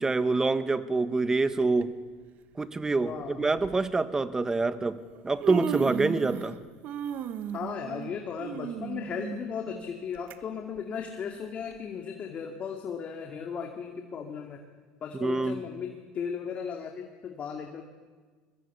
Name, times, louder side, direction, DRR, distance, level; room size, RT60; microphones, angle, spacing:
voice 1, 0.0-1.9 2.6-5.0 5.2-6.6 15.2-15.6, right 3 dB, 15° right, 12 dB, 1.5 m, -26 dB
Human voice, 1.6-1.8 2.9-3.0 3.6-3.8 4.8-4.9 5.2-6.6 6.8-10.3 10.8-10.9 11.7-11.8, right 8 dB, 55° right, 1.3 m, -35 dB
voice 2, 3.0-3.5 7.5-14.6 15.0-17.8, left 7 dB, 40° left, 3 dB, 2.4 m, -36 dB
22.5 x 20.0 x 8.4 m, 1.4 s
supercardioid pair, 95°, 3 cm